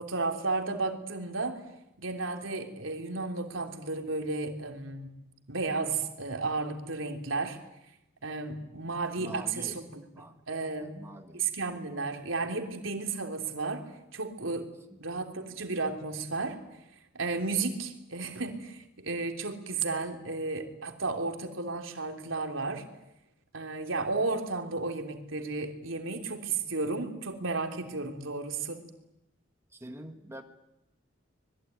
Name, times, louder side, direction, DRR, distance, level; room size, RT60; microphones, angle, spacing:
voice 1, 0.0-1.6 2.0-5.1 5.5-7.6 8.2-10.0 10.5-11.0 11.3-13.8 14.1-14.7 15.0-16.6 17.1-22.9 23.5-28.9, right 3 dB, 85° right, 4 dB, 3.3 m, -33 dB
voice 2, 9.2-9.8 10.1-10.4 10.8-11.7 14.9-15.2 29.7-30.4, right 1 dB, 15° right, 5 dB, 1.6 m, -46 dB
26.0 x 21.5 x 9.5 m, 0.86 s
head